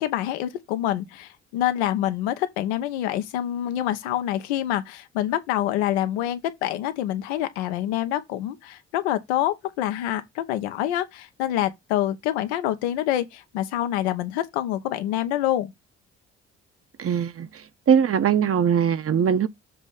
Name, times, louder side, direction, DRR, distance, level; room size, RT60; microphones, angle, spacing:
voice 1, 0.0-15.7, left 12 dB, 90° left, 0.9 m, -26 dB
voice 2, 17.0-17.5 17.9-19.5, right 8 dB, 45° right, 0.9 m, -20 dB
7.1 x 3.2 x 5.4 m
hypercardioid pair, 50°, 32 cm